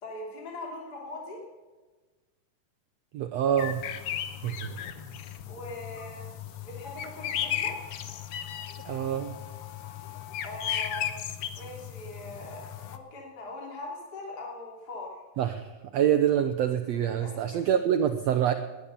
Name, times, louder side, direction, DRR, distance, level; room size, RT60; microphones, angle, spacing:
voice 1, 0.0-1.4 5.5-6.2 6.6-7.7 10.4-11.1 11.6-15.1 17.2-17.3, left 2 dB, 30° left, -1 dB, 3.2 m, -40 dB
voice 2, 3.1-3.8 4.4-4.7 8.8-9.4 15.4-18.5, right 9 dB, 80° right, 8 dB, 1.5 m, -26 dB
sound 1, 3.6-13.0, left 10 dB, 80° left, 1.3 m, -36 dB
19.0 x 10.5 x 6.8 m, 1.3 s
omnidirectional pair, 4.0 m